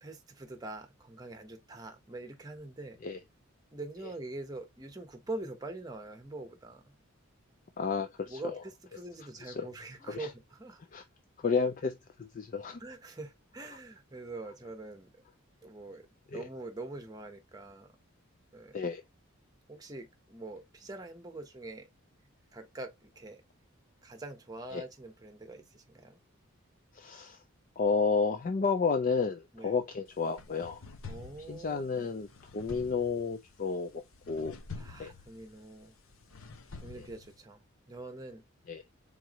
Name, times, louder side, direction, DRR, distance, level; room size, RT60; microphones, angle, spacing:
voice 1, 0.0-3.0 3.7-6.9 8.2-10.8 12.8-15.2 15.6-16.1 16.3-17.9 18.5-18.8 19.7-21.9 22.5-23.4 24.0-26.2 29.5-29.8 31.1-32.1 34.8-35.9 36.8-37.6 37.9-38.4, right 2 dB, 20° right, 0.9 m, -44 dB
voice 2, 7.8-8.6 9.4-9.7 10.1-10.3 10.9-11.0 11.4-12.8 16.3-16.5 18.7-19.0 24.7-24.8 26.9-27.4 27.8-30.8 31.5-32.3 32.5-34.6 35.0-35.1 36.9-37.1 38.7-38.8, left 5 dB, 40° left, 0.4 m, -31 dB
sound 1, 30.1-37.4, left 4 dB, 75° left, 0.8 m, -48 dB
4.6 x 3.7 x 3.0 m
head